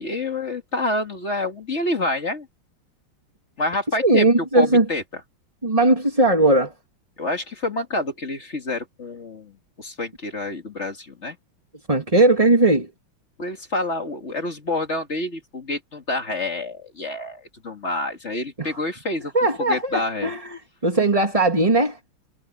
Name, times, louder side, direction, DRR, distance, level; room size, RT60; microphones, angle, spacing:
voice 1, 0.0-2.5 3.6-5.2 7.2-11.4 13.4-19.3 19.6-20.3, left 2 dB, 35° left, 2.2 m, -28 dB
voice 2, 4.0-4.8 5.6-6.7 11.9-12.9 18.6-18.7 19.3-22.0, right 2 dB, 15° right, 2.6 m, -18 dB
omnidirectional pair, 2.3 m